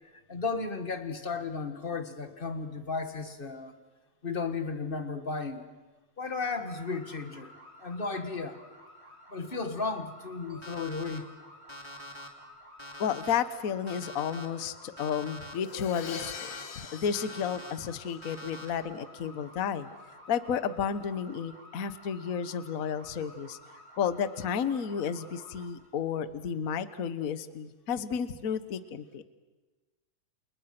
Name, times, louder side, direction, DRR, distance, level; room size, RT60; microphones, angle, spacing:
voice 1, 0.3-3.7 4.2-5.6 6.2-7.5 7.8-8.6 9.3-11.3, left 4 dB, 25° left, 8 dB, 1.2 m, -34 dB
sound 1, 6.6-25.7, equal, 10° right, 4.8 m, -53 dB
Alarm, 10.6-11.2 11.7-12.3 12.8-13.4 13.9-14.5 15.0-15.5 16.0-16.6 17.1-17.7 18.2-18.7, left 1 dB, 10° left, 2.3 m, -45 dB
voice 2, 13.0-16.5 16.8-19.9 20.3-23.6 24.0-29.2, left 7 dB, 55° left, 13 dB, 0.9 m, -32 dB
Crash cymbal, 15.6-18.5, left 7 dB, 75° left, 2.6 m, -43 dB
30.0 x 28.5 x 6.0 m, 1.2 s
omnidirectional pair, 3.3 m